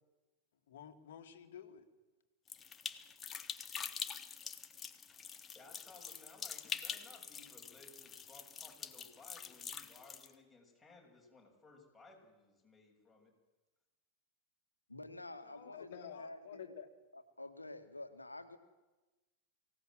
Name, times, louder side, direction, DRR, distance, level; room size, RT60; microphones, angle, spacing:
voice 1, 0.7-1.9 15.4-16.9, left 8 dB, 60° left, 6 dB, 2.3 m, -51 dB
sound 1, 2.5-10.3, left 7 dB, 20° left, 1.1 m, -45 dB
voice 2, 5.5-13.3, left 3 dB, 5° left, -2 dB, 7.4 m, -60 dB
voice 3, 14.9-16.7 17.1-18.6, left 2 dB, 85° left, 8 dB, 1.9 m, -49 dB
24.0 x 17.0 x 7.7 m, 1.1 s
figure-of-eight pair, 90°, 0 cm